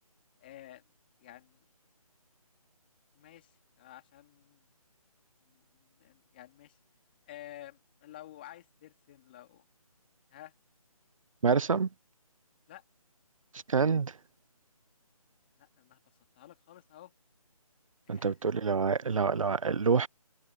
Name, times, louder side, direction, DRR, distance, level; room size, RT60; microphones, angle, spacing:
voice 1, 0.4-0.8 1.2-1.7 3.1-4.6 5.4-6.8 7.3-9.6 10.3-10.5 12.7-12.8 15.6-16.0 16.3-17.1 18.1-18.3, left 13 dB, 15° left, 2.5 m, -51 dB
voice 2, 11.4-11.9 13.5-14.2 18.1-20.1, right 5 dB, 60° right, 0.6 m, -27 dB
figure-of-eight pair, 175°, 19 cm